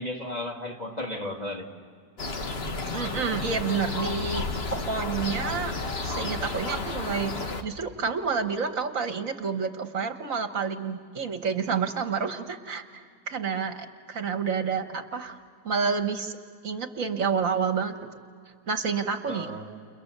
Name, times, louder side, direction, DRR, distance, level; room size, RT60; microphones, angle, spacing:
voice 1, 0.0-1.7 19.3-19.7, left 1 dB, 25° left, 1 dB, 2.4 m, -34 dB
sound 1, 2.2-7.6, left 3 dB, 45° left, 1.6 m, -32 dB
voice 2, 2.9-4.4 4.7-5.7 6.0-7.3 7.6-15.4 15.6-16.4 16.6-17.9 18.7-19.5, right 5 dB, 60° right, 8 dB, 1.6 m, -29 dB
30.0 x 30.0 x 6.7 m, 2.2 s
omnidirectional pair, 1.6 m